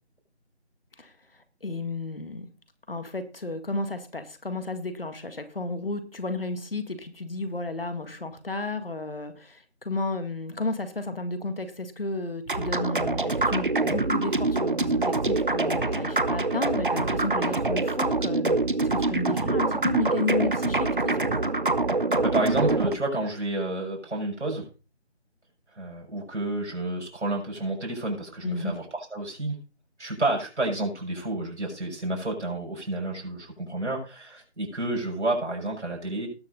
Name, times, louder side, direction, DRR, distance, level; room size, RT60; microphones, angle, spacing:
voice 1, 1.6-2.5 2.9-20.9 21.2-21.3 28.4-28.7, left 2 dB, 55° left, 9 dB, 2.0 m, -32 dB
sound 1, 12.5-23.0, right 3 dB, 50° right, 0.8 m, -25 dB
voice 2, 22.2-24.7 25.7-29.6 30.0-36.3, right 2 dB, 90° right, -1 dB, 5.8 m, -30 dB
19.0 x 6.3 x 4.0 m, 0.34 s
figure-of-eight pair, 180°, 34 cm